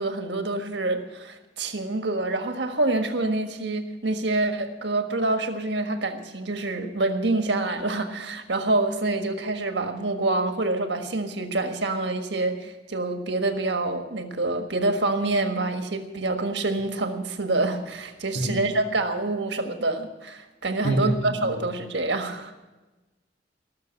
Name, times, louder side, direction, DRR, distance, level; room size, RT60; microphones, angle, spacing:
voice 1, 0.0-22.5, right 2 dB, 70° right, 6 dB, 1.5 m, -26 dB
voice 2, 18.3-18.7 20.8-21.5, right 1 dB, 85° left, 2 dB, 1.5 m, -26 dB
19.0 x 6.7 x 8.9 m, 1.1 s
head